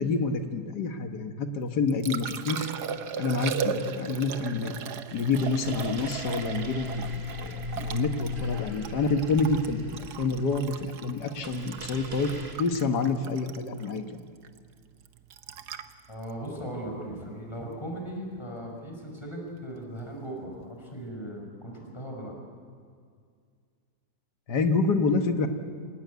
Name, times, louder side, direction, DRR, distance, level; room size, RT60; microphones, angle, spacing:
voice 1, 0.0-2.7 3.2-4.7 5.1-12.3 12.6-14.2 24.5-25.5, left 4 dB, 80° left, 6 dB, 2.0 m, -28 dB
Liquid, 1.6-17.7 20.5-20.7, right 7 dB, 75° right, 1.5 m, -38 dB
sound 1, 5.4-12.6, left 2 dB, 40° right, 2.8 m, -38 dB
voice 2, 16.1-22.3, right 1 dB, 15° left, 0 dB, 5.3 m, -38 dB
26.5 x 19.0 x 8.3 m, 2.1 s
omnidirectional pair, 1.7 m